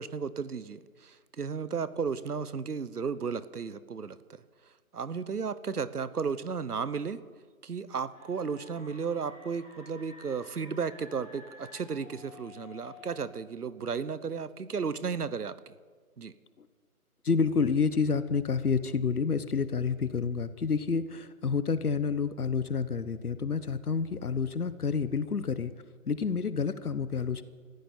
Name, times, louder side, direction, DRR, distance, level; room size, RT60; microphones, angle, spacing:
voice 1, 0.0-4.2 4.9-7.2 7.6-15.7 16.2-16.3, right 5 dB, 85° right, 16 dB, 1.1 m, -34 dB
sound 1, 8.1-13.2, left 2 dB, 5° right, 4.9 m, -52 dB
voice 2, 17.2-25.7 26.1-27.4, left 5 dB, 75° left, 13 dB, 1.2 m, -29 dB
21.5 x 14.5 x 4.5 m, 1.6 s
figure-of-eight pair, 175°, 45 cm